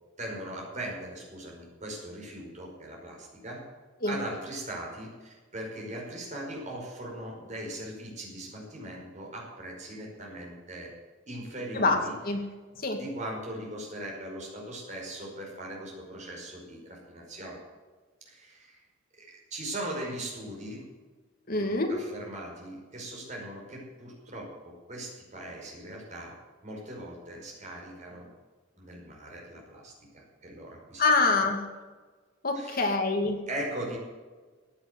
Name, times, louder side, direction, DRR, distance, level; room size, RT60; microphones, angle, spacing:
voice 1, 0.2-3.7 4.1-11.0 11.3-12.2 13.0-17.6 18.2-18.8 19.2-20.8 21.5-26.4 26.6-28.3 28.8-31.0 32.5-32.9 33.5-34.0, right 1 dB, 35° right, -1 dB, 5.2 m, -40 dB
voice 2, 21.5-21.9 31.0-31.6 32.4-33.4, left 3 dB, 45° left, 3 dB, 2.3 m, -25 dB
15.5 x 8.9 x 7.8 m, 1.4 s
head